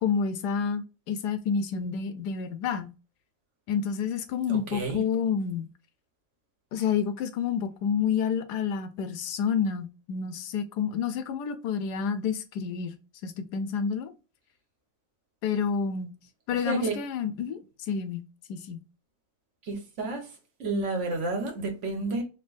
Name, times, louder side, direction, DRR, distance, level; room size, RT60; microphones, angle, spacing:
voice 1, 0.0-2.9 3.7-5.7 6.7-12.9 13.2-14.1 15.4-16.1 16.5-17.6 17.9-18.8, left 7 dB, 90° left, 1.2 m, -29 dB
voice 2, 4.5-5.0 16.5-17.0 19.6-22.2, right 3 dB, 50° right, 1.4 m, -31 dB
4.4 x 3.1 x 2.5 m
omnidirectional pair, 1.7 m